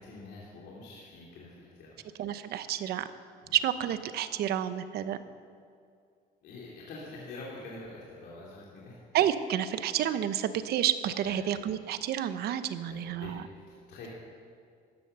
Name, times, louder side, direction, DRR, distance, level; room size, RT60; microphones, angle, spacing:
voice 1, 0.0-2.0 3.4-3.5 6.4-9.0 11.2-11.4 12.8-14.1, left 2 dB, 75° left, -5 dB, 2.9 m, -46 dB
voice 2, 2.2-3.1 3.5-5.2 9.1-13.4, right 10 dB, 70° right, 12 dB, 0.9 m, -30 dB
14.0 x 11.0 x 6.8 m, 2.2 s
cardioid pair, 110°, 17 cm